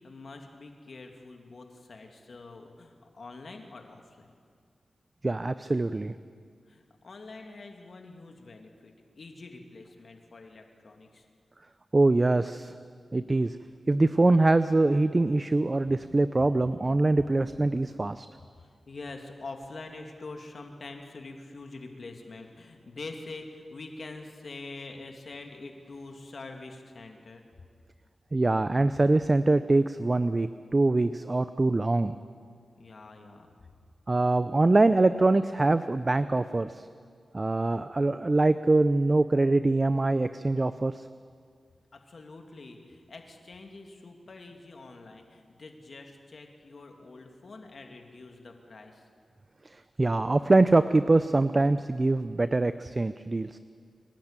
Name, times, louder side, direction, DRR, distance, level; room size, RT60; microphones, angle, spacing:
voice 1, 0.0-4.3 6.7-11.2 18.5-27.4 32.8-33.7 41.9-49.1, left 3 dB, 65° left, 3 dB, 2.6 m, -45 dB
voice 2, 5.2-6.1 11.9-12.7 13.1-13.6 13.9-18.3 28.3-32.2 34.1-36.9 37.3-41.0 49.7-53.6, right 2 dB, 35° right, 12 dB, 0.6 m, -24 dB
27.0 x 12.0 x 9.0 m, 2.1 s
cardioid pair, 55°, 0 cm